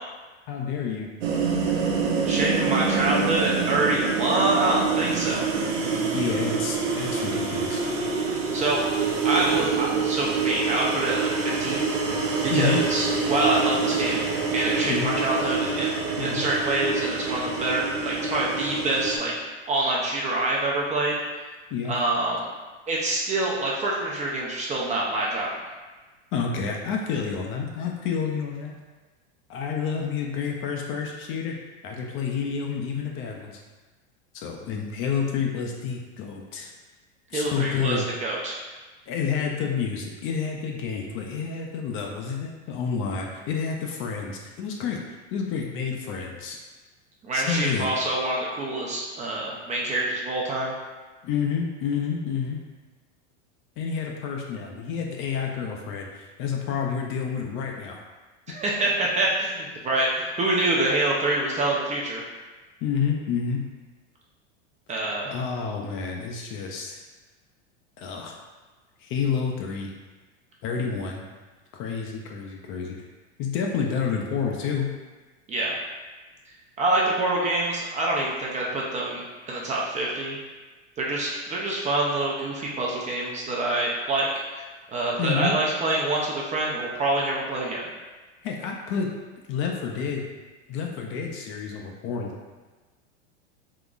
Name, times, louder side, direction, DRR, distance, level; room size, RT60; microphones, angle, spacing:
voice 1, 0.5-1.1 6.1-7.8 12.5-12.8 14.8-15.1 16.2-16.5 21.7-21.9 26.3-28.8 29.5-31.6 31.8-33.6 34.3-36.7 37.3-38.1 39.1-46.6 47.3-47.9 51.2-52.6 53.8-58.0 62.8-63.6 65.3-67.0 68.0-68.4 69.0-69.9 70.6-71.2 71.7-73.0 73.4-74.9 85.2-85.5 88.4-89.1 89.5-90.3 90.7-92.3, left 6 dB, 35° left, 1 dB, 0.4 m, -29 dB
sound 1, 1.2-19.2, right 5 dB, 80° right, 0.7 m, -26 dB
voice 2, 2.2-5.5 8.5-8.8 9.2-11.8 12.4-15.9 16.2-21.2 21.9-22.5 22.9-25.5 37.3-38.6 47.2-50.7 58.5-62.3 64.9-65.3 75.5-75.7 76.8-80.4 81.0-87.8, right 2 dB, 20° right, -3 dB, 0.4 m, -26 dB
3.8 x 2.9 x 2.4 m, 1.3 s
hypercardioid pair, 110°, 36 cm